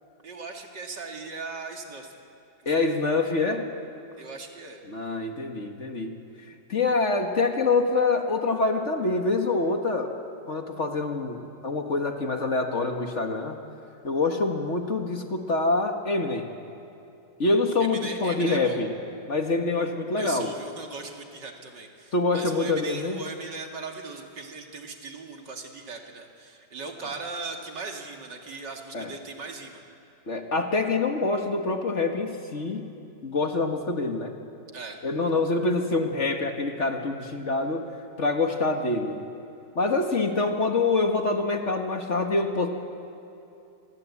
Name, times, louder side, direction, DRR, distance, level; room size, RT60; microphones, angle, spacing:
voice 1, 0.2-2.1 2.6-3.0 4.1-4.8 17.8-18.8 20.2-29.8 34.7-35.0, right 3 dB, 70° right, 2 dB, 3.0 m, -39 dB
voice 2, 2.6-3.7 4.9-6.2 6.7-10.1 10.5-13.5 14.0-16.5 17.4-18.9 19.3-20.6 22.1-23.2 28.9-29.1 30.3-32.9 33.2-34.3 35.0-37.9 38.2-39.2 39.7-42.7, left 3 dB, 40° left, 4 dB, 1.8 m, -25 dB
27.5 x 21.5 x 8.5 m, 2.7 s
omnidirectional pair, 1.9 m